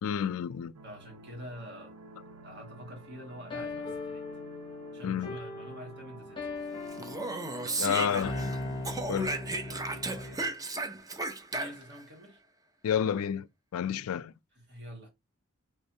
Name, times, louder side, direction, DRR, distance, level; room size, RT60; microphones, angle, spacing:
voice 1, 0.0-0.7 5.0-5.4 7.8-8.3 9.1-9.4 12.8-13.5 13.7-14.3, left 8 dB, 70° left, 0.3 m, -30 dB
sound 1, 0.7-9.0, right 2 dB, 70° right, 0.6 m, -51 dB
voice 2, 0.8-2.0 2.4-4.2 4.9-6.6 7.6-8.5 9.5-10.5 11.5-12.4 14.5-15.1, equal, 55° right, 1.8 m, -46 dB
sound 2, 3.5-10.5, left 2 dB, 25° left, 0.8 m, -39 dB
Speech, 6.9-8.6 8.8-12.0, right 2 dB, 15° right, 0.5 m, -34 dB
3.6 x 3.2 x 2.7 m
head